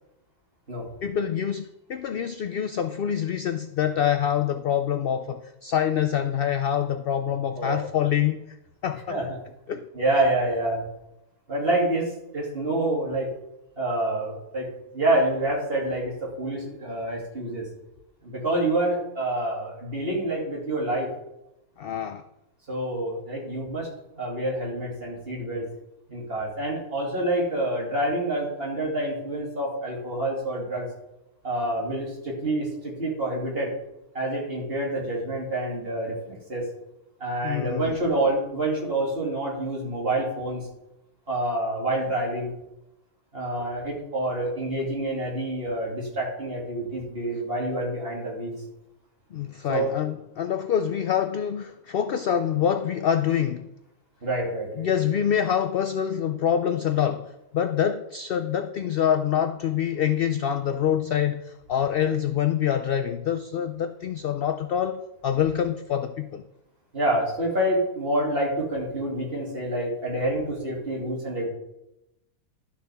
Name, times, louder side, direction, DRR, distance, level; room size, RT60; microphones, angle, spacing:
voice 1, 1.0-8.6 8.8-9.2 9.7-9.9 21.8-22.2 37.4-38.0 49.3-53.7 54.8-66.4, left 9 dB, 75° left, 8 dB, 0.5 m, -26 dB
voice 2, 9.9-10.9 11.5-13.3 13.8-14.7 14.9-17.7 18.2-21.1 22.7-23.9 24.2-25.6 26.1-30.9 31.4-33.7 34.1-36.6 37.2-40.7 41.3-42.5 43.3-48.6 49.7-49.9 54.2-54.9 66.9-71.5, right 1 dB, 40° right, -4 dB, 2.8 m, -27 dB
12.0 x 7.0 x 3.5 m, 0.90 s
omnidirectional pair, 1.5 m